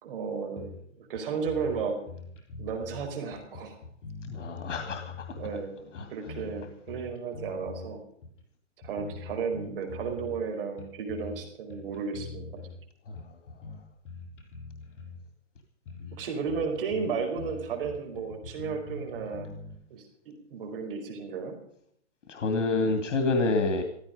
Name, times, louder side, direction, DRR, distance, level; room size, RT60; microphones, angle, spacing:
voice 1, 0.0-0.7 1.0-2.0 2.6-3.8 5.3-5.8 6.1-8.0 8.8-12.6 16.1-19.5 19.9-21.5, right 5 dB, 50° right, 4 dB, 4.9 m, -33 dB
sound 1, 0.6-0.9 1.1-1.2 1.4-3.1 3.5-5.6 5.9-7.9 8.2-8.4 8.8-10.4 10.8-11.4 11.7-12.8 13.1-15.2 15.6-15.7 15.9-16.2 16.5-19.8, left 3 dB, 45° left, 6.9 m, -43 dB
voice 2, 4.2-5.1 5.9-6.1 13.1-13.3 22.3-23.8, left 3 dB, 80° left, 6 dB, 2.6 m, -28 dB
15.5 x 14.0 x 5.2 m, 0.70 s
hypercardioid pair, 160°, 36 cm